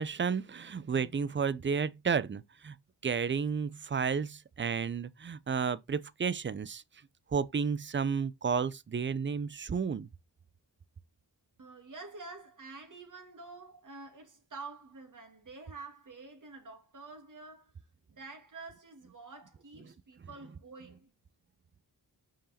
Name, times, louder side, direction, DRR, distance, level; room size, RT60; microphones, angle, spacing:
voice 1, 0.0-2.7 3.0-6.8 7.3-10.1, right 6 dB, 30° right, 0.5 m, -32 dB
voice 2, 11.6-17.7 18.1-21.1, right 3 dB, 45° right, 2.2 m, -48 dB
6.1 x 4.7 x 4.2 m
cardioid pair, 85°, 42 cm